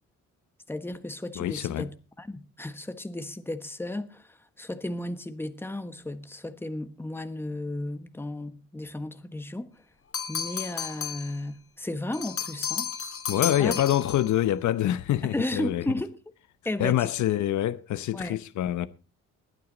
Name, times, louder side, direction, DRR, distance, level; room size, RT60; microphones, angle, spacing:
voice 1, 0.7-9.8 10.3-12.9 13.3-13.7 15.2-16.2 16.6-17.2 18.1-18.4, left 1 dB, 5° left, 1.3 m, -34 dB
voice 2, 1.4-1.9 13.3-15.8 16.8-18.9, left 12 dB, 70° left, 0.9 m, -26 dB
sound 1, 10.1-11.4 12.1-14.3, left 7 dB, 45° left, 2.5 m, -33 dB
20.5 x 9.3 x 4.0 m
cardioid pair, 90°, 30 cm